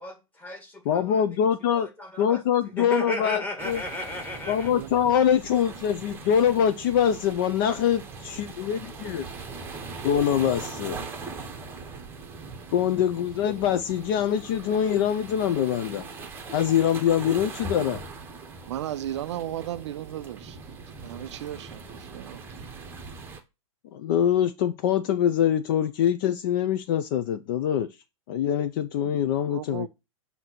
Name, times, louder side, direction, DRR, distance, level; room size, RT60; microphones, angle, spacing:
voice 1, 0.0-1.2 1.7-4.7, equal, 10° left, 1.6 m, -35 dB
voice 2, 0.9-1.9 2.2-3.8 4.5-9.3 10.0-11.0 12.7-16.1 16.5-18.0 23.9-27.9 28.3-29.9, left 9 dB, 40° left, 0.5 m, -24 dB
sound 1, 3.6-23.4, right 4 dB, 10° right, 0.9 m, -41 dB
voice 3, 4.7-5.1 18.7-20.6 21.0-22.7 29.0-29.2 29.5-29.9, right 12 dB, 55° right, 0.4 m, -35 dB
7.7 x 2.8 x 5.9 m
hypercardioid pair, 145°, 18 cm